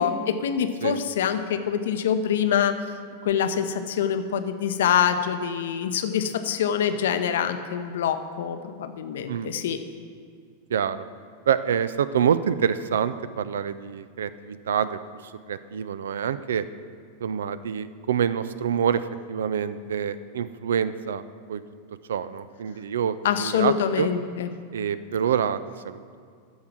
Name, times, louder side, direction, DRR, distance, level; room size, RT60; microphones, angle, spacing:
voice 1, 0.0-2.7 3.2-9.8 23.2-24.5, left 8 dB, 60° left, 9 dB, 0.7 m, -25 dB
voice 2, 10.7-11.1 11.5-15.0 15.5-16.6 17.2-21.2 21.5-21.6 22.1-24.1 24.7-25.6 25.8-26.0, right 8 dB, 65° right, 15 dB, 0.4 m, -26 dB
13.5 x 4.8 x 7.5 m, 2.1 s
figure-of-eight pair, 90°, 0 cm